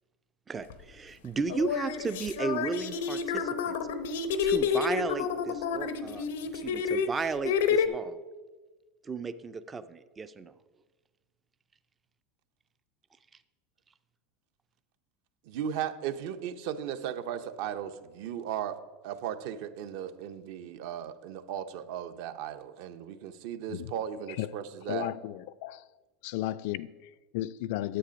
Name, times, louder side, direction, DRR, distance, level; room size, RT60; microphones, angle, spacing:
voice 1, 0.5-3.8 4.4-6.3 6.5-8.2 9.0-10.5, right 4 dB, 15° right, 0.4 m, -34 dB
sound 1, 0.7-0.8 1.5-7.9, left 6 dB, 90° left, 0.8 m, -30 dB
voice 2, 15.5-18.8 19.0-25.1, right 9 dB, 55° right, 0.7 m, -36 dB
voice 3, 24.9-25.8 26.2-28.0, left 14 dB, 60° left, 0.3 m, -34 dB
10.0 x 7.7 x 5.2 m
supercardioid pair, 160°, 0 cm